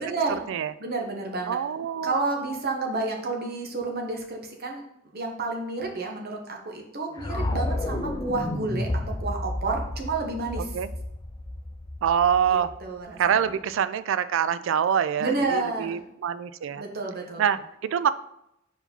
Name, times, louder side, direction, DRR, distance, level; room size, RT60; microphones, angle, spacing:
voice 1, 0.0-0.4 0.8-1.6 2.0-4.8 5.1-8.9 9.2-10.8 12.5-13.6 15.2-16.0 16.7-17.4, right 3 dB, 50° right, 1 dB, 1.1 m, -30 dB
voice 2, 1.5-2.1 10.7-10.9 12.0-12.7 13.2-16.8 17.4-18.1, right 8 dB, 70° right, 14 dB, 0.3 m, -25 dB
sound 1, 7.2-13.3, left 1 dB, 20° left, 0.4 m, -31 dB
4.8 x 4.3 x 5.3 m, 0.81 s
head